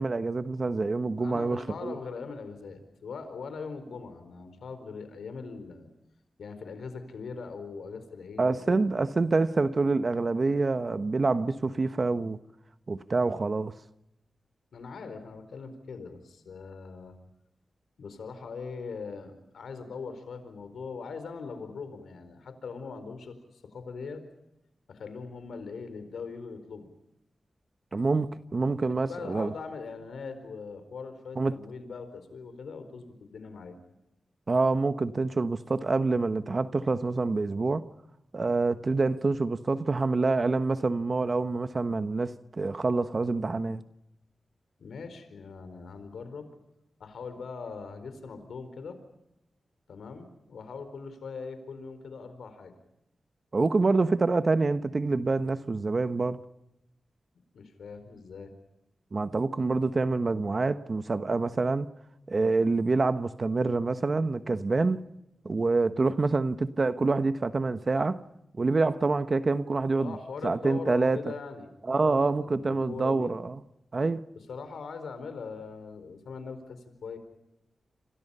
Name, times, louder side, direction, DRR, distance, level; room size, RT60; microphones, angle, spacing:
voice 1, 0.0-1.9 8.4-12.4 12.9-13.7 27.9-29.5 31.4-31.5 34.5-37.8 38.3-43.8 53.5-56.4 59.1-61.9 62.3-65.0 65.4-68.2 68.5-70.1 70.4-71.2 71.9-73.5 73.9-74.2, right 3 dB, 45° right, 1.2 m, -26 dB
voice 2, 1.2-5.9 6.4-8.8 14.7-17.2 18.0-24.2 24.9-26.9 29.1-33.8 44.8-46.5 47.0-49.0 49.9-52.7 57.5-58.5 70.0-73.3 74.3-77.2, left 5 dB, 90° left, 4.3 m, -41 dB
28.5 x 27.5 x 5.6 m
cardioid pair, 70°, 0 cm